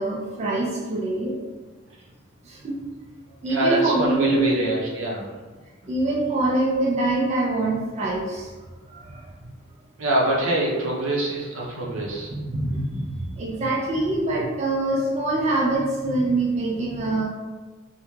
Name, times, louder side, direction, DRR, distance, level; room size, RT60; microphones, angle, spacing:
voice 1, 0.0-1.4 2.4-2.8 3.4-4.5 5.9-8.5 8.9-9.2 11.8-17.2, right 2 dB, 35° right, -2 dB, 0.3 m, -24 dB
voice 2, 3.5-5.3 10.0-12.3, right 1 dB, 80° right, -3 dB, 0.6 m, -24 dB
2.3 x 2.2 x 3.0 m, 1.3 s
head